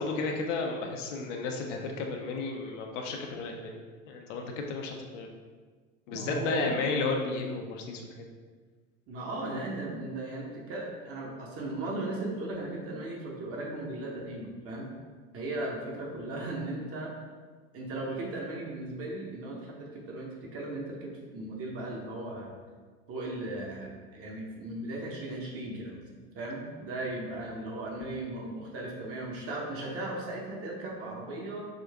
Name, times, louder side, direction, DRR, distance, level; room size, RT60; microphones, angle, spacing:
voice 1, 0.0-5.3 6.1-8.2, left 3 dB, 60° left, 2 dB, 0.6 m, -33 dB
voice 2, 6.1-6.7 9.1-14.9 15.3-17.1 17.7-22.5 23.1-26.0 26.3-31.6, right 2 dB, 35° right, -2 dB, 0.9 m, -37 dB
3.8 x 2.5 x 3.4 m, 1.5 s
figure-of-eight pair, 80°, 42 cm